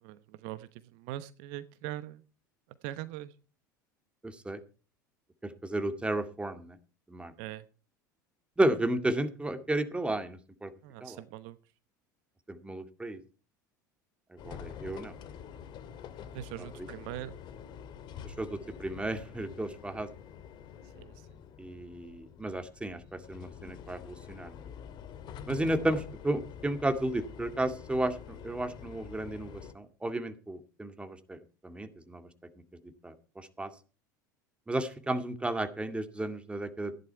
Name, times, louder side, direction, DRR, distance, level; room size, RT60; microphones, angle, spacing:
voice 1, 0.0-2.2 2.8-3.3 7.4-7.6 10.8-11.6 16.3-17.3 20.9-21.1, right 14 dB, 60° right, 14 dB, 1.0 m, -41 dB
voice 2, 4.2-4.6 5.4-6.8 7.1-7.3 8.6-10.7 11.0-11.2 12.5-13.2 14.3-15.2 16.6-16.9 18.2-20.1 21.6-24.7 25.5-32.3 33.0-33.7 34.7-36.9, right 1 dB, 10° right, 8 dB, 2.1 m, -33 dB
sound 1, 14.4-29.7, left 8 dB, 45° left, 2.1 m, -47 dB
15.5 x 11.0 x 4.6 m, 0.35 s
hypercardioid pair, 75°, 10 cm